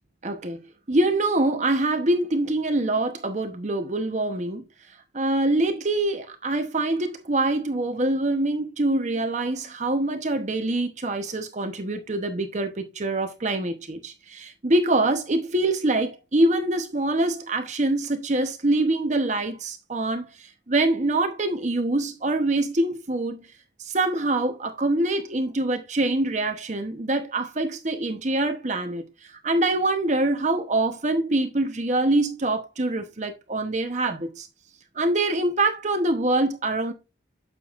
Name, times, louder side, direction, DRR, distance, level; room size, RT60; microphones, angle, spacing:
voice 1, 0.2-0.6 0.9-4.6 5.1-23.5 23.8-34.5 34.9-36.9, right 2 dB, 40° right, 0.9 m, -25 dB
9.2 x 6.9 x 2.5 m
head